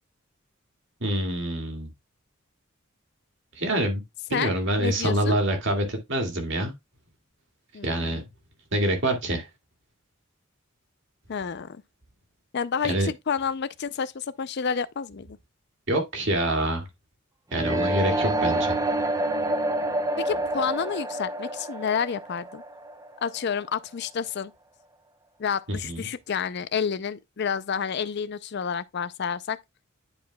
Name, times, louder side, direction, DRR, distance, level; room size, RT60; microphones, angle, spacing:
voice 1, 1.0-1.9 3.6-4.0 4.3-6.7 7.8-8.2 8.7-9.5 12.8-13.1 15.9-16.9 17.5-18.8 25.7-26.1, right 1 dB, 65° right, 2.1 m, -26 dB
voice 2, 4.8-5.4 7.7-8.2 11.3-11.8 12.5-15.4 20.2-22.6 23.2-24.5 25.4-29.6, left 6 dB, 55° left, 0.5 m, -29 dB
sound 1, 17.5-23.4, right 1 dB, 15° right, 0.6 m, -27 dB
10.5 x 4.7 x 2.3 m
head